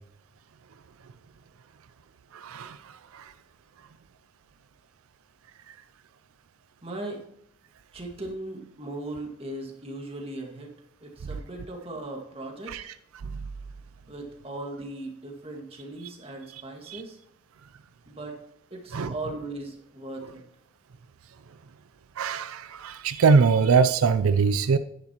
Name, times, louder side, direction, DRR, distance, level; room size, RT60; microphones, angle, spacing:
voice 1, 2.3-2.8 3.1-3.2 12.7-12.8 13.3-13.4 16.9-17.0 18.9-19.1 22.2-24.8, right 5 dB, 85° right, 0.4 m, -22 dB
voice 2, 6.8-7.2 7.9-10.7 11.0-12.8 14.1-17.2 18.1-18.4 18.7-20.4, right 2 dB, 25° right, 1.8 m, -38 dB
10.5 x 9.7 x 3.0 m
head